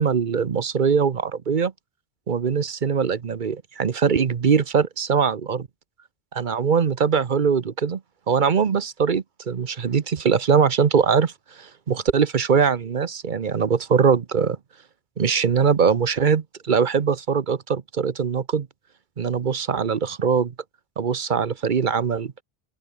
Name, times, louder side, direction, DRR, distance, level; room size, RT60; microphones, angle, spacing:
voice 1, 0.0-1.7 2.3-5.7 6.3-8.0 8.3-11.3 11.6-14.6 15.2-18.7 19.2-20.5 21.0-22.3, right 6 dB, 50° right, 1.0 m, -22 dB
open air
omnidirectional pair, 1.1 m